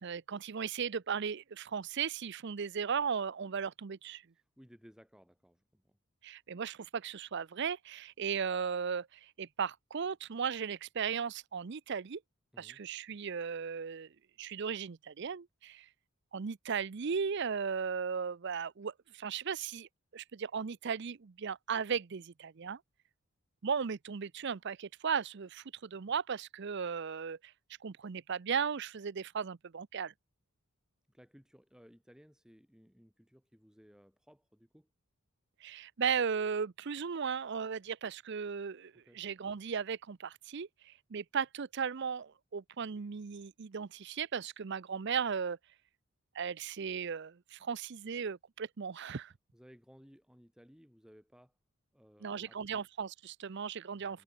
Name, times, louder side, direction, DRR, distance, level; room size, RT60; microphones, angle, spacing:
voice 1, 0.0-4.2 6.2-12.2 12.6-14.1 14.4-15.9 16.3-22.8 23.6-27.5 27.8-30.1 35.6-45.6 46.3-49.3 52.2-54.2, right 6 dB, 55° right, 0.5 m, -36 dB
voice 2, 4.6-6.0 12.5-12.8 31.1-34.9 38.9-39.2 49.5-51.5 51.9-52.8 53.9-54.2, equal, 5° right, 4.7 m, -60 dB
head